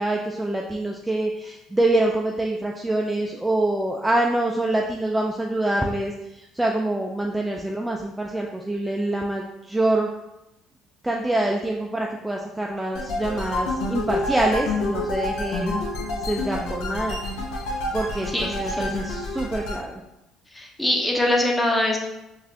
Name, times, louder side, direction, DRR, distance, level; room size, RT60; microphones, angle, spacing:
voice 1, 0.0-10.1 11.0-15.8 16.2-17.2 17.9-20.0, right 1 dB, 10° right, 0 dB, 0.4 m, -25 dB
sound 1, 12.9-19.8, left 1 dB, 80° left, 0.8 m, -28 dB
voice 2, 18.3-18.9 20.5-22.0, left 1 dB, 10° left, 0 dB, 0.8 m, -23 dB
4.0 x 2.5 x 2.7 m, 0.90 s
supercardioid pair, 75°, 0 cm